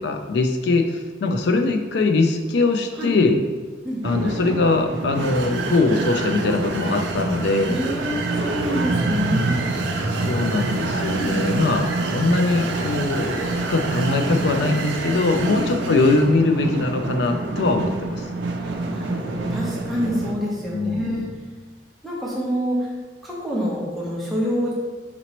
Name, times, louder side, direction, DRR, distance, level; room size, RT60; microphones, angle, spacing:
voice 1, 0.0-3.4 4.0-7.8 10.1-18.3 20.7-21.3, left 3 dB, 65° left, 6 dB, 0.4 m, -21 dB
voice 2, 3.8-4.3 7.7-9.5 11.1-11.3 15.4-16.0 18.9-21.3 22.0-22.9 23.2-24.7, equal, ahead, -6 dB, 0.8 m, -27 dB
sound 1, 4.0-20.3, right 2 dB, 80° right, 0.4 m, -26 dB
3.9 x 2.9 x 2.9 m, 1.3 s
head